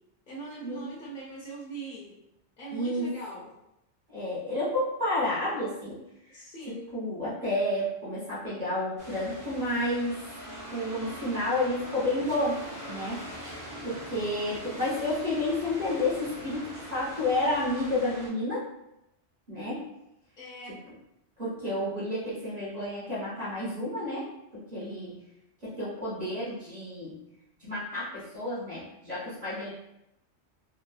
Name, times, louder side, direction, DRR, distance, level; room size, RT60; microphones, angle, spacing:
voice 1, 0.3-2.2 2.6-3.5 6.3-6.9 20.4-20.8, right 2 dB, 55° left, -5 dB, 0.6 m, -41 dB
voice 2, 2.7-3.1 4.1-6.0 6.2-10.1 10.7-12.6 12.9-13.2 13.8-18.6 19.5-19.8 21.4-25.2 25.6-27.2 27.6-29.7, left 1 dB, 40° right, -8 dB, 0.9 m, -30 dB
sound 1, 9.0-18.3, equal, 20° right, 0.6 m, -42 dB
3.1 x 2.0 x 2.3 m, 0.85 s
omnidirectional pair, 1.2 m